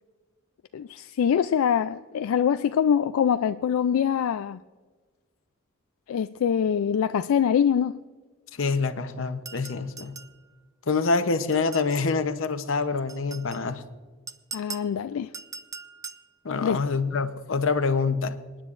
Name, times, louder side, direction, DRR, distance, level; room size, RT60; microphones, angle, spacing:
voice 1, 0.7-4.6 6.1-8.0 14.5-15.3 16.6-16.8, left 8 dB, 85° left, 0.3 m, -24 dB
voice 2, 8.5-10.2 10.9-13.8 16.4-18.4, left 4 dB, 65° left, 0.8 m, -26 dB
sound 1, 9.4-10.4 11.5-12.1 13.1-13.6 14.3-14.9 15.3-16.3, right 5 dB, 15° right, 0.4 m, -41 dB
27.0 x 10.0 x 2.5 m
head